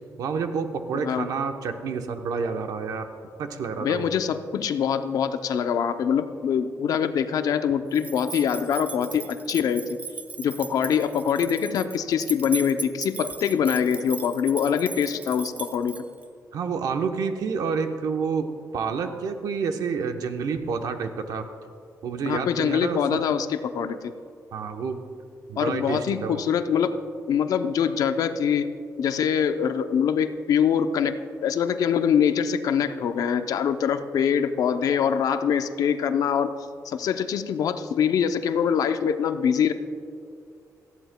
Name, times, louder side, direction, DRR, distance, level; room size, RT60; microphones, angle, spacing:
voice 1, 0.2-3.1 3.4-4.1 16.5-21.4 22.0-23.2 24.5-25.0 25.5-26.4, right 5 dB, 75° right, 6 dB, 0.9 m, -29 dB
voice 2, 3.8-10.0 10.4-16.0 22.3-24.1 25.6-26.9 27.3-28.7 29.0-36.5 36.8-39.7, left 7 dB, 70° left, 10 dB, 0.6 m, -24 dB
sound 1, 7.9-16.3, right 4 dB, 25° right, 0.5 m, -38 dB
18.5 x 14.0 x 2.2 m, 2.4 s
wide cardioid pair, 160°, 6 cm